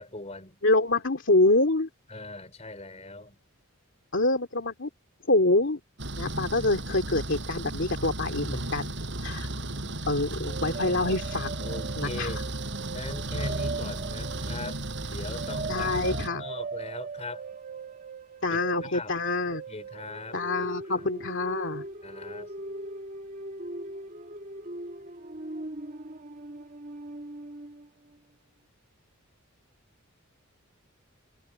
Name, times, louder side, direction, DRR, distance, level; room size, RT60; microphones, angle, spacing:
voice 1, 0.0-0.6 2.1-3.4 11.6-12.5 12.9-14.8 15.1-17.4 18.5-19.2 19.7-20.4 20.9-21.1 22.0-22.5, left 2 dB, 30° left, 4.8 m, -41 dB
voice 2, 0.6-1.9 4.1-4.9 5.3-5.8 6.2-8.9 9.2-9.5 10.1-11.5 12.0-12.4 15.7-16.5 18.4-19.6 20.3-21.8, left 2 dB, 60° left, 2.7 m, -26 dB
sound 1, 6.0-16.3, right 1 dB, 55° right, 8.0 m, -34 dB
sound 2, 10.5-27.9, right 3 dB, 40° right, 2.5 m, -40 dB
head